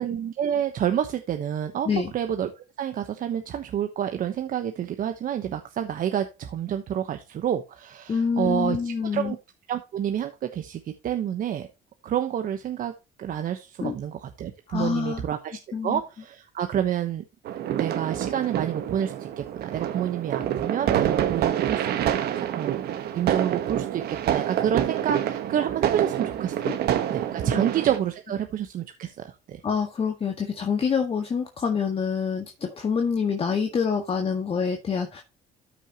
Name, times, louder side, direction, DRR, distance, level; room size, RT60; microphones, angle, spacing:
voice 1, 0.0-1.9 2.1-9.4 9.7-11.7 12.0-12.9 13.2-17.2 17.8-22.8 23.1-26.7 27.1-29.6, right 9 dB, 55° right, 7 dB, 1.1 m, -29 dB
voice 2, 8.1-9.3 13.8-14.0 14.7-15.2 15.7-16.0 26.6-26.8 27.4-27.7 29.6-35.2, left 6 dB, 35° left, 3 dB, 1.7 m, -26 dB
sound 1, 17.5-28.0, right 10 dB, 70° right, 1.3 m, -27 dB
13.0 x 6.2 x 3.0 m, 0.27 s
cardioid pair, 110°, 17 cm